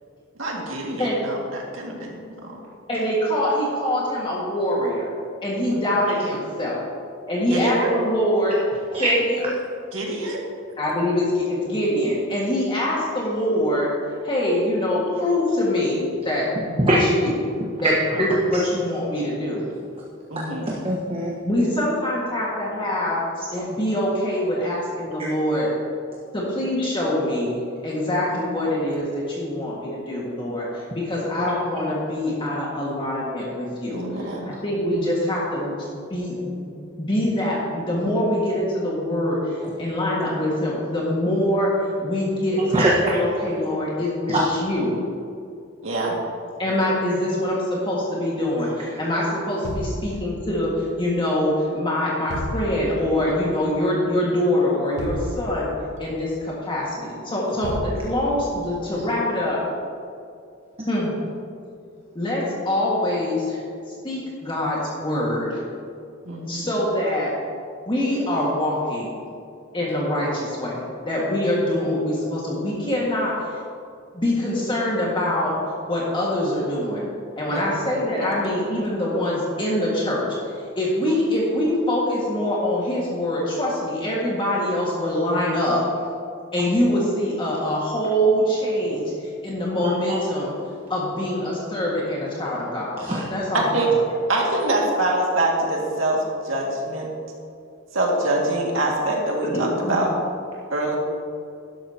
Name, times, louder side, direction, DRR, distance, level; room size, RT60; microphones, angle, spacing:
voice 1, 0.4-2.6 7.5-7.9 9.9-10.4 16.7-16.8 20.3-20.7 30.5-30.6 33.9-34.5 45.8-46.2 57.5-57.6 66.3-66.7 77.5-77.7 93.5-93.9 94.3-97.1 97.9-100.1 100.7-101.0, right 1 dB, 85° right, -1 dB, 2.1 m, -25 dB
voice 2, 2.9-5.1 5.4-6.8 7.3-8.6 9.0-9.6 10.8-13.9 14.2-16.5 16.9-17.3 17.8-17.9 18.2-19.6 21.4-23.2 23.5-25.7 26.3-35.7 36.1-45.0 46.6-55.7 56.0-59.6 60.9-61.1 62.2-63.6 64.0-65.6 66.5-67.3 67.9-69.2 69.7-73.5 74.1-75.5 75.9-77.1 77.4-80.3 80.8-85.8 86.5-90.5 90.9-93.0 93.3-93.9 99.5-100.0, left 1 dB, 25° left, -5 dB, 1.8 m, -24 dB
voice 3, 17.8-18.2 20.7-21.3 42.7-43.2 44.3-44.4 89.8-89.9 93.0-93.2, right 1 dB, 30° right, -4 dB, 1.3 m, -21 dB
sound 1, 49.6-50.8 52.3-53.2 55.0-56.1 57.6-58.6, equal, 60° left, 1.0 m, -32 dB
12.0 x 11.5 x 2.9 m, 2.4 s
head